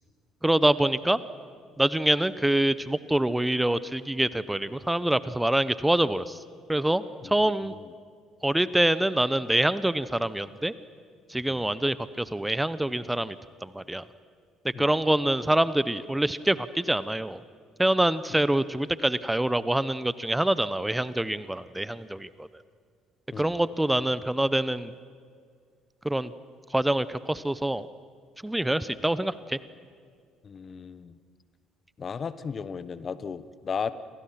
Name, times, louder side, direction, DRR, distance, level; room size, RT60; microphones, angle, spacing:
voice 1, 0.4-1.2 1.8-6.4 6.7-7.7 8.4-10.7 11.3-13.4 13.6-14.0 14.8-17.4 17.8-22.5 23.4-24.9 26.0-26.3 26.7-27.9 28.4-29.6, right 1 dB, 10° right, 16 dB, 1.0 m, -25 dB
voice 2, 30.4-31.2 32.0-33.9, left 6 dB, 40° left, 15 dB, 1.3 m, -35 dB
30.0 x 25.5 x 6.0 m, 2.1 s
hypercardioid pair, 55°, 0 cm